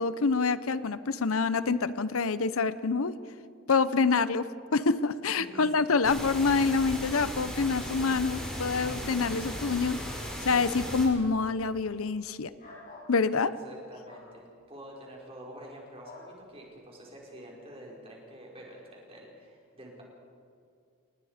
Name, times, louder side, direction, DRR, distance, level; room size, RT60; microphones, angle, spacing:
voice 1, 0.0-3.2 3.7-10.0 10.4-12.5 13.1-13.5, left 4 dB, 80° left, 14 dB, 0.8 m, -26 dB
voice 2, 5.4-5.9 13.4-20.0, equal, 25° right, -2 dB, 5.4 m, -48 dB
sound 1, 6.0-11.0, equal, 5° left, 5.4 m, -37 dB
sound 2, 12.6-13.1 14.0-14.3 16.0-16.3, left 2 dB, 40° left, 6.3 m, -48 dB
29.5 x 19.5 x 5.1 m, 2.4 s
head